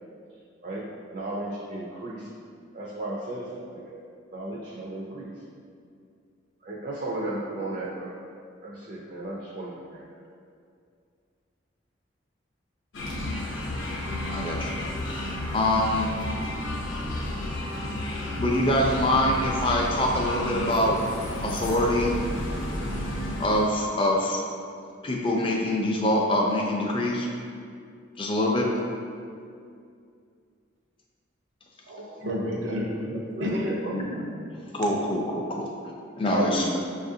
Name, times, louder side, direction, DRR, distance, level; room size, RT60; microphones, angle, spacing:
voice 1, 1.1-2.3 2.7-4.0 4.3-5.3 6.6-8.1 8.6-10.3 33.1-34.0, right 1 dB, 40° right, -4 dB, 0.4 m, -35 dB
sound 1, 12.9-23.8, left 1 dB, 80° left, 0.6 m, -32 dB
voice 2, 14.3-14.8 15.5-16.1 18.4-20.9 21.4-22.1 23.4-24.4 25.0-27.3 28.2-28.7 33.9-34.3 34.7-35.7 36.2-36.8, left 1 dB, 25° left, -1 dB, 0.4 m, -24 dB
voice 3, 31.9-33.1 33.4-33.7 36.3-36.8, equal, 75° right, -2 dB, 0.7 m, -30 dB
6.0 x 2.4 x 2.7 m, 2.3 s
head